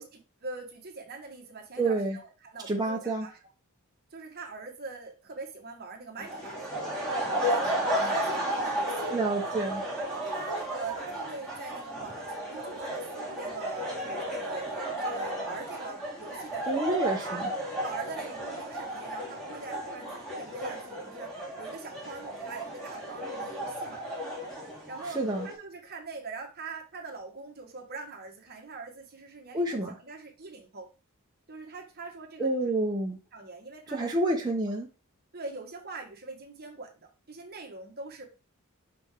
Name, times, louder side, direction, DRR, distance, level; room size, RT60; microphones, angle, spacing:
voice 1, 0.0-3.3 4.1-6.6 7.4-9.1 10.0-17.0 17.2-17.4 17.8-24.0 24.9-30.9 31.5-32.7 33.3-34.1 35.3-38.2, right 3 dB, 45° right, 2 dB, 1.5 m, -43 dB
voice 2, 1.8-2.2 2.7-3.3 9.1-9.8 16.7-17.5 25.1-25.5 29.5-29.9 32.4-33.2 33.9-34.9, right 2 dB, 20° right, -2 dB, 0.9 m, -28 dB
sound 1, 6.2-25.5, right 1 dB, 5° left, 2.4 m, -34 dB
5.8 x 5.2 x 3.7 m, 0.30 s
head